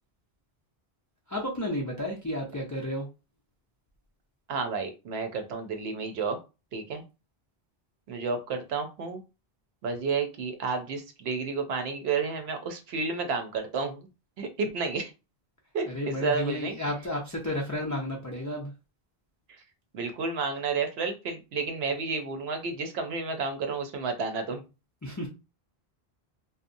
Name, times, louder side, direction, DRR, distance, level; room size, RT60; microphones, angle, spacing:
voice 1, 1.3-3.1 15.9-18.7 25.0-25.3, left 1 dB, 30° left, -2 dB, 0.3 m, -32 dB
voice 2, 4.5-6.4 6.7-7.0 8.1-9.2 9.8-14.1 14.4-15.1 15.7-16.8 19.9-24.6, right 4 dB, 85° right, 6 dB, 0.8 m, -31 dB
2.7 x 2.0 x 2.5 m, 0.28 s
omnidirectional pair, 1.0 m